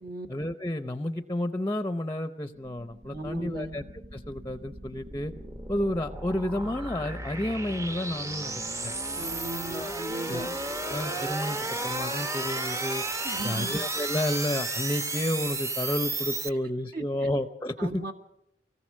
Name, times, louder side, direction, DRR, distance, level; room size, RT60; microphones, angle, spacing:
voice 1, 0.3-3.8 4.1-5.3 5.7-8.9 9.7-10.0 10.3-10.5 10.8-13.0 13.4-18.1, left 1 dB, 15° left, 9 dB, 0.7 m, -31 dB
sound 1, 2.6-16.5, right 2 dB, 20° right, 0.9 m, -34 dB
voice 2, 3.1-3.7 9.2-10.5 13.2-13.8 16.5-16.6 16.9-17.3 17.8-18.1, right 2 dB, 60° right, 2 dB, 2.0 m, -37 dB
24.5 x 18.5 x 6.4 m, 0.79 s
head